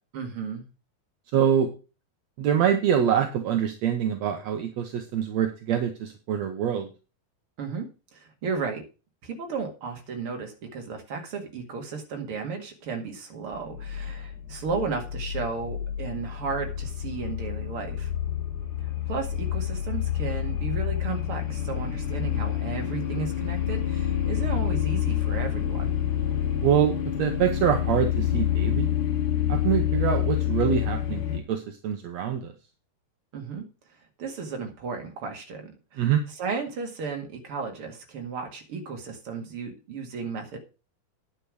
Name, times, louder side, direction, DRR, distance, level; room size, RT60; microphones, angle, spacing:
voice 1, 0.1-0.6 7.6-7.9 8.1-8.8 9.2-18.1 19.1-26.0 33.3-33.6 34.2-40.6, right 5 dB, 45° right, 3 dB, 2.4 m, -34 dB
voice 2, 1.3-1.7 2.4-6.9 26.6-28.9 29.5-32.5 36.0-36.2, right 9 dB, 70° right, 5 dB, 1.8 m, -25 dB
sound 1, 13.5-31.4, left 10 dB, 85° left, 3.7 m, -28 dB
10.0 x 6.9 x 6.3 m, 0.32 s
omnidirectional pair, 4.3 m